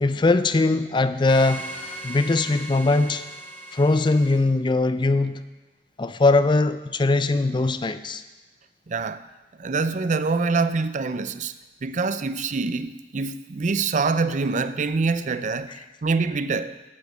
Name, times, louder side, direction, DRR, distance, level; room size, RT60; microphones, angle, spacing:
voice 1, 0.0-1.7 2.0-3.2 3.7-5.4 6.0-8.2, left 2 dB, 25° left, 0.4 m, -21 dB
sound 1, 1.3-4.4, right 1 dB, 10° left, 2.8 m, -38 dB
voice 2, 8.9-9.2 9.6-11.5 11.8-16.8, right 4 dB, 45° right, 0.5 m, -25 dB
9.2 x 8.3 x 8.0 m
head